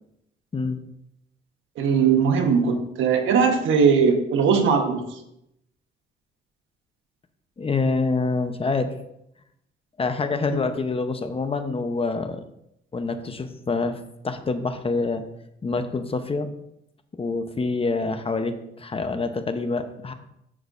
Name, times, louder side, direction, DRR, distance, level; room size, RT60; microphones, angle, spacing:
voice 1, 1.8-5.0 10.5-10.6, right 6 dB, 80° right, 4 dB, 1.3 m, -20 dB
voice 2, 7.6-8.9 10.0-12.4 12.9-15.2 15.6-16.5 17.2-20.1, left 3 dB, 30° left, 8 dB, 0.9 m, -26 dB
12.0 x 6.3 x 2.6 m, 0.80 s
cardioid pair, 90°, 20 cm